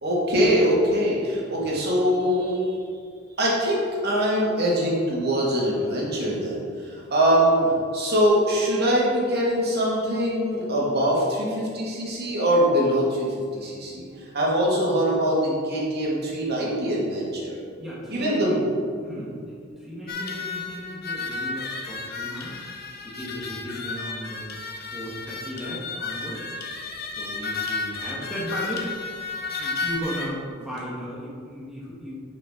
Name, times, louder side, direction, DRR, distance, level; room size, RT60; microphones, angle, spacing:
voice 1, 0.0-2.8 3.4-7.6 7.9-17.6 18.1-18.6 19.0-19.3, equal, 55° right, -4 dB, 2.1 m, -23 dB
voice 2, 17.8-18.6 19.0-22.6 23.0-24.5 24.8-26.4 27.1-28.9 29.6-32.1, equal, ahead, -7 dB, 1.4 m, -36 dB
sound 1, 20.1-30.3, left 4 dB, 50° left, 1.0 m, -33 dB
9.8 x 5.6 x 3.8 m, 2.1 s
head